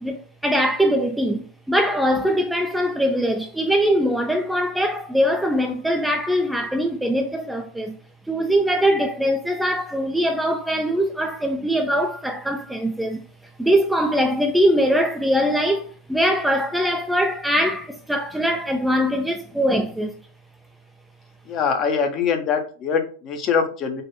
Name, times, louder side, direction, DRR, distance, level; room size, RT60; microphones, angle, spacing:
voice 1, 0.0-8.0 8.3-13.2 13.6-20.1, equal, 5° right, 0.5 m, -22 dB
voice 2, 21.5-24.0, left 6 dB, 35° left, 0.9 m, -23 dB
4.0 x 2.5 x 4.1 m
figure-of-eight pair, 90°, 0 cm